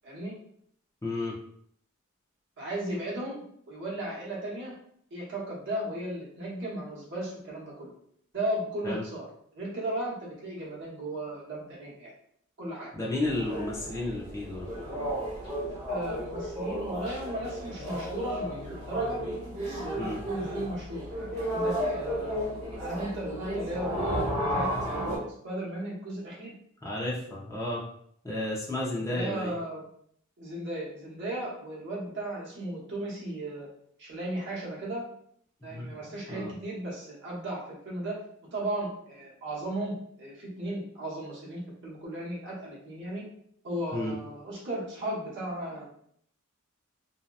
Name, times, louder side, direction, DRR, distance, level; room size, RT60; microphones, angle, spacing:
voice 1, 0.0-0.3 2.6-4.7 5.1-7.9 8.3-9.3 9.5-12.1 12.6-12.9 15.9-19.2 19.6-22.4 22.8-26.5 28.9-29.9 30.4-33.7 34.0-35.0 35.6-38.2 38.5-43.2 43.6-45.8, right 1 dB, 60° right, -5 dB, 0.9 m, -36 dB
voice 2, 1.0-1.3 8.8-9.0 12.9-14.7 20.0-20.2 26.8-27.8 28.2-29.5 35.7-35.9 36.3-36.5 43.9-44.1, left 1 dB, 15° left, -5 dB, 0.5 m, -32 dB
sound 1, 13.2-25.2, equal, 35° right, 0.9 m, -33 dB
2.7 x 2.2 x 2.3 m, 0.67 s
head